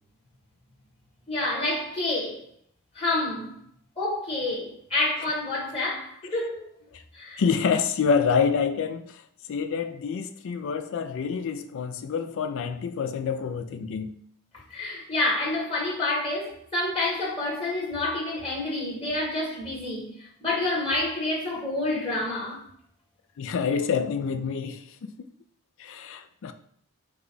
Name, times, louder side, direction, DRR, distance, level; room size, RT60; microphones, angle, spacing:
voice 1, 1.3-2.4 2.9-3.6 4.0-6.6 7.1-7.4 14.7-22.7, left 2 dB, 25° left, 1.6 m, -28 dB
voice 2, 7.4-9.2 9.5-14.1 23.4-24.9 25.8-26.5, left 6 dB, 60° left, 0.4 m, -27 dB
5.0 x 2.3 x 3.9 m
head